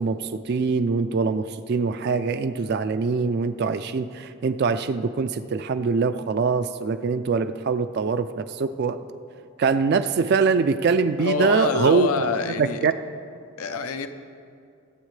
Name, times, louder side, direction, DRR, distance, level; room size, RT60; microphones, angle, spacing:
voice 1, 0.0-9.0 9.6-12.1 12.4-12.9, right 4 dB, 50° right, 10 dB, 0.3 m, -23 dB
voice 2, 11.2-12.8 13.6-14.1, left 4 dB, 85° left, 9 dB, 0.7 m, -26 dB
23.5 x 8.1 x 3.2 m, 2.4 s
head